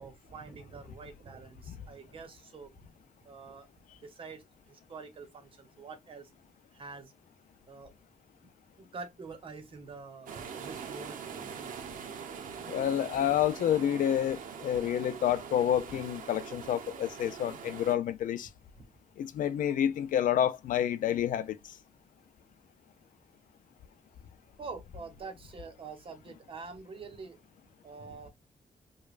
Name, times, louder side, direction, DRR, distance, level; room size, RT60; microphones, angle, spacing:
voice 1, 0.0-2.7 3.2-3.7 4.0-6.3 6.7-7.1 7.7-7.9 8.8-11.9 18.8-18.9 24.6-27.4 27.8-28.3, right 4 dB, 40° right, 0.9 m, -46 dB
sound 1, 10.3-18.0, right 6 dB, 90° right, 0.8 m, -43 dB
voice 2, 12.7-18.5 19.2-21.6, left 10 dB, 80° left, 0.4 m, -29 dB
5.1 x 2.2 x 2.4 m
wide cardioid pair, 180°, 14 cm